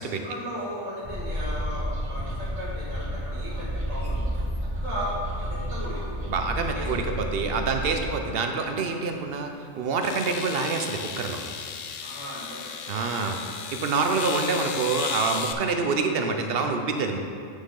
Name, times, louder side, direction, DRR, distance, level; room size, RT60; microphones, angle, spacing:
voice 1, 0.2-4.2 4.8-6.4 6.7-7.2 12.0-12.9, equal, 85° right, -9 dB, 2.0 m, -36 dB
sound 1, 1.0-7.9, equal, 30° right, 1.0 m, -31 dB
voice 2, 6.3-9.5 9.8-11.4 12.9-13.4 13.7-17.2, right 4 dB, 55° right, 5 dB, 0.8 m, -26 dB
sound 2, 9.1-9.2 10.0-15.5, left 7 dB, 60° left, 0.5 m, -35 dB
8.4 x 6.6 x 3.8 m, 2.3 s
omnidirectional pair, 1.3 m